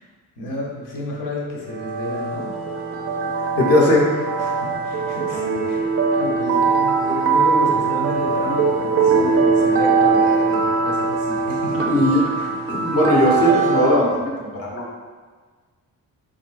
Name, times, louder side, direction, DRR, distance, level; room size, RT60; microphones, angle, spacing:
voice 1, 0.4-2.5 4.4-5.8 6.1-11.9 12.4-12.5, left 1 dB, 65° left, -3 dB, 1.1 m, -31 dB
sound 1, 1.7-14.1, right 4 dB, 45° right, 0.4 m, -21 dB
voice 2, 3.6-4.1 11.8-12.2 12.7-14.8, left 1 dB, 45° left, -4 dB, 0.9 m, -18 dB
4.2 x 3.8 x 2.5 m, 1.5 s
cardioid pair, 180°, 34 cm